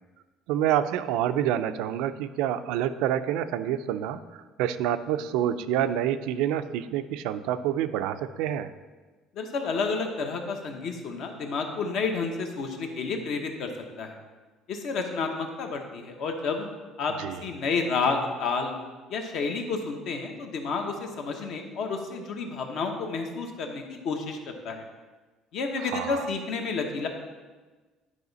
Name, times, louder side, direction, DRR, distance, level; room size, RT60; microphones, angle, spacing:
voice 1, 0.5-8.7 17.2-17.4 25.8-26.3, right 10 dB, 85° right, 11 dB, 0.4 m, -27 dB
voice 2, 9.3-13.7 14.0-14.2 14.7-16.7 17.0-18.7 19.1-24.9 25.5-27.1, left 4 dB, 55° left, 4 dB, 1.0 m, -30 dB
11.0 x 4.9 x 4.0 m, 1.3 s
cardioid pair, 160°, 0 cm